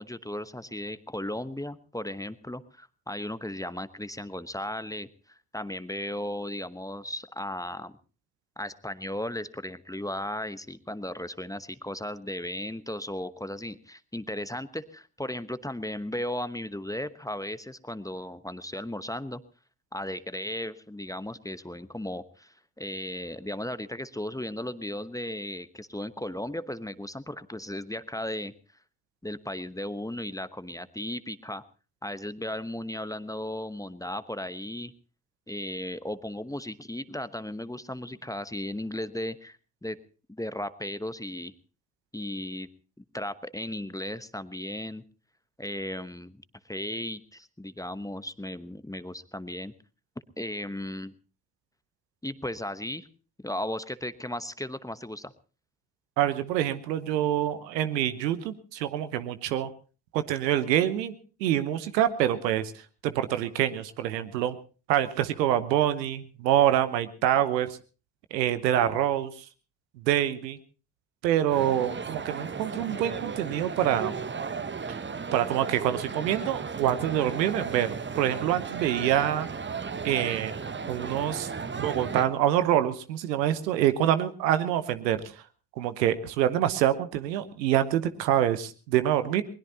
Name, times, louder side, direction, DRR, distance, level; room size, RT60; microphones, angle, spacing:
voice 1, 0.0-8.0 8.6-19.4 19.9-28.5 29.2-31.6 32.0-34.9 35.5-40.0 40.3-41.5 42.1-42.7 43.1-45.0 45.6-49.7 50.4-51.1 52.2-53.1 53.4-55.3, left 1 dB, 5° left, 13 dB, 1.0 m, -36 dB
voice 2, 56.2-59.7 60.1-61.1 61.4-62.7 63.0-64.6 64.9-67.7 68.3-69.3 70.1-70.6 71.2-74.1 75.3-79.5 80.0-80.5 80.9-81.5 81.8-85.2 85.8-89.4, right 11 dB, 80° right, 12 dB, 1.1 m, -26 dB
sound 1, 71.5-82.3, right 5 dB, 20° right, 1.0 m, -35 dB
21.5 x 20.5 x 2.8 m, 0.36 s
figure-of-eight pair, 40°, 50 cm